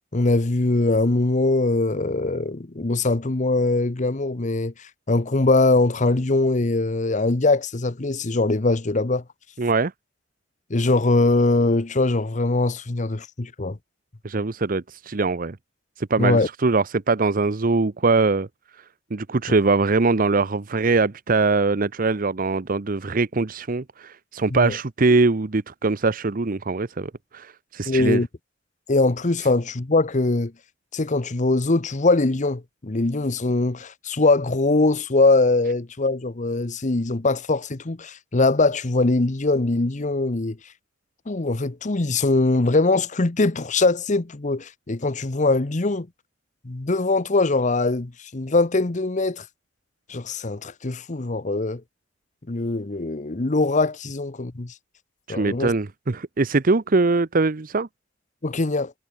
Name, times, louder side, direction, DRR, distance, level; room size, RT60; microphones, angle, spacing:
voice 1, 0.1-9.2 10.7-13.8 16.2-16.5 24.5-24.8 27.9-28.3 28.9-30.5 30.9-40.6 41.3-46.1 46.6-49.4 50.1-51.8 52.5-54.7 55.3-55.7 58.4-58.9, left 2 dB, 40° left, 0.9 m, -22 dB
voice 2, 9.6-9.9 14.2-15.6 16.0-18.5 19.1-28.2 55.3-57.9, right 3 dB, 50° right, 0.8 m, -22 dB
head